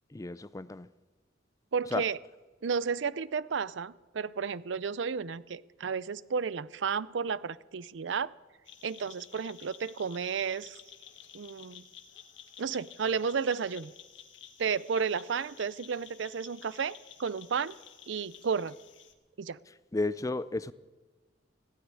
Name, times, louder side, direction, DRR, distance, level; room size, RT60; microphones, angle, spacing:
voice 1, 0.1-0.9 1.9-2.0 19.9-20.7, left 2 dB, 15° left, 0.4 m, -32 dB
voice 2, 1.7-2.2 2.6-8.3 8.8-10.8 11.3-11.8 12.6-13.9 14.6-17.7 18.1-18.8 19.4-19.6, right 6 dB, 70° right, 0.5 m, -32 dB
sound 1, 8.7-19.1, left 9 dB, 70° left, 1.4 m, -52 dB
15.5 x 9.7 x 9.7 m
head